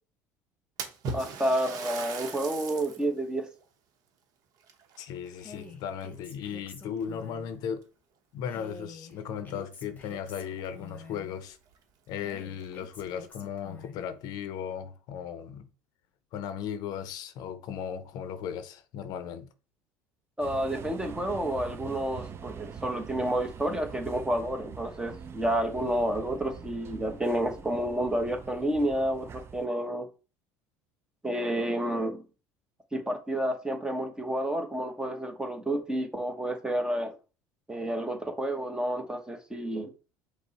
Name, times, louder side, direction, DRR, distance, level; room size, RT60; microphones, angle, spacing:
Splash splatter, 0.8-3.1 3.6-3.7 4.6-5.6 6.0-6.5 7.3-7.4 7.8-7.9 10.1-10.2 10.5-10.6 11.2-11.3 11.7-11.8 12.5-13.1, right 4 dB, 55° right, 0.8 m, -39 dB
voice 1, 1.1-3.5 20.4-30.1 31.2-32.2 32.9-37.1 37.7-39.9, right 1 dB, 10° right, 0.8 m, -30 dB
voice 2, 5.0-7.8 8.3-11.6 12.1-15.7 16.3-19.5, left 8 dB, 60° left, 0.5 m, -36 dB
Female speech woman speaking, 5.4-7.5 8.4-11.3 12.2-14.1, left 3 dB, 20° left, 1.1 m, -48 dB
sound 1, 20.4-29.7, right 7 dB, 35° right, 0.4 m, -44 dB
5.1 x 2.1 x 4.0 m
supercardioid pair, 90°, 8 cm